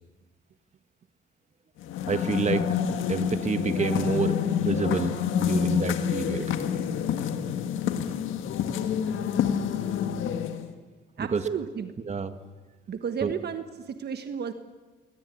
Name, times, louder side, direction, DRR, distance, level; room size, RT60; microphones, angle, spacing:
sound 1, 1.8-10.7, left 8 dB, 85° left, 1.7 m, -28 dB
voice 1, 2.1-2.7 3.1-6.8 11.2-11.5 12.1-12.4 13.2-13.3, right 5 dB, 35° right, 9 dB, 1.7 m, -29 dB
voice 2, 11.2-12.0 12.9-14.5, right 7 dB, 55° right, 8 dB, 1.4 m, -33 dB
22.0 x 19.0 x 9.9 m, 1.3 s
cardioid pair, 90°, 20 cm